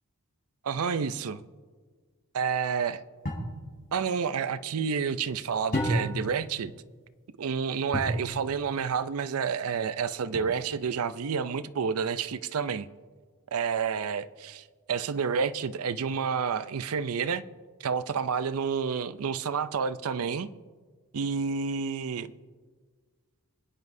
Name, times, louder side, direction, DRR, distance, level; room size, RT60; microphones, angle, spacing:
voice 1, 0.6-1.4 2.3-3.0 3.9-6.7 7.4-12.9 13.5-17.4 17.8-20.5 21.1-22.3, right 6 dB, 75° right, 0.5 m, -29 dB
sound 1, 3.2-3.6 5.7-6.3 7.9-8.3 10.3-10.9, equal, 45° left, 4.3 m, -30 dB
26.0 x 9.6 x 2.7 m
head